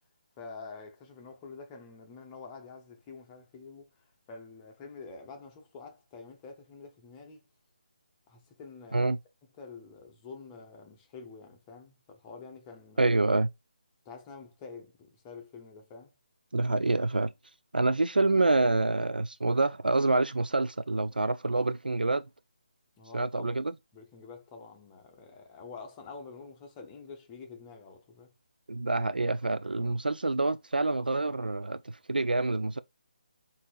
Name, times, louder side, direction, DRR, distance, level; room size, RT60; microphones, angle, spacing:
voice 1, 0.4-3.9 4.3-7.4 8.3-9.1 9.6-13.1 14.0-16.1 17.8-18.5 23.0-23.6 23.9-28.3, left 4 dB, 20° left, 0.9 m, -47 dB
voice 2, 13.0-13.5 16.5-17.3 17.7-22.2 23.1-23.7 28.7-32.8, right 2 dB, 85° right, 0.3 m, -27 dB
5.8 x 2.8 x 2.5 m
figure-of-eight pair, 150°, 5 cm